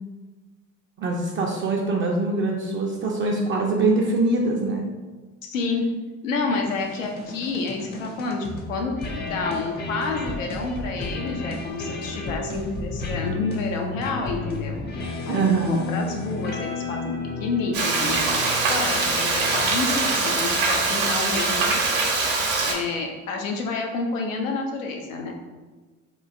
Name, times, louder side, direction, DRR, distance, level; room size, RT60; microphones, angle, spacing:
voice 1, 1.0-4.9 15.3-15.9, right 3 dB, 35° right, -1 dB, 0.4 m, -23 dB
voice 2, 5.4-5.8 6.2-14.9 15.3-17.1 17.4-18.2 18.7-21.8 22.7-25.3, left 4 dB, 90° left, 2 dB, 0.5 m, -29 dB
sound 1, 6.7-20.1, left 3 dB, 25° left, 0.5 m, -33 dB
Frying (food), 17.7-22.7, right 3 dB, 70° right, 0.8 m, -23 dB
3.0 x 2.3 x 2.5 m, 1.3 s
hypercardioid pair, 60°, 37 cm